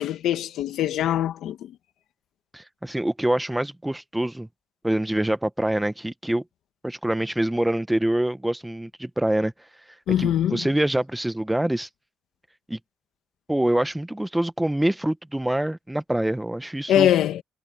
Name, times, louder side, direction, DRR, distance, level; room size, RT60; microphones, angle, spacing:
voice 1, 0.0-1.7 10.1-10.6 16.9-17.4, left 11 dB, 80° left, 2.1 m, -22 dB
voice 2, 2.5-4.5 4.8-6.4 6.8-9.5 10.2-11.9 12.7-12.8 13.5-17.1, right 1 dB, 5° right, 1.1 m, -25 dB
cardioid pair, 90°, 0 cm